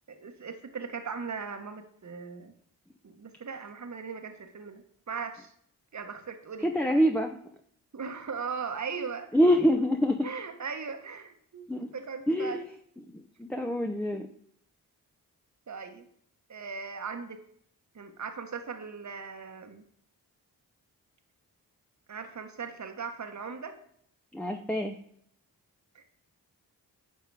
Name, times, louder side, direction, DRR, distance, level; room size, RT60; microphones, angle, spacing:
voice 1, 0.1-2.5 3.0-5.5 5.9-6.7 7.9-9.3 10.2-11.6 11.9-12.6 15.7-16.1 16.5-17.4 17.9-19.8 22.1-23.8 25.9-26.1, right 5 dB, 45° right, 6 dB, 1.2 m, -38 dB
voice 2, 6.6-7.4 9.3-10.3 11.7-11.9 12.3-12.6 13.1-14.3 24.3-24.9, equal, 5° left, 4 dB, 0.9 m, -25 dB
9.6 x 5.4 x 4.8 m, 0.65 s
supercardioid pair, 40°, 39 cm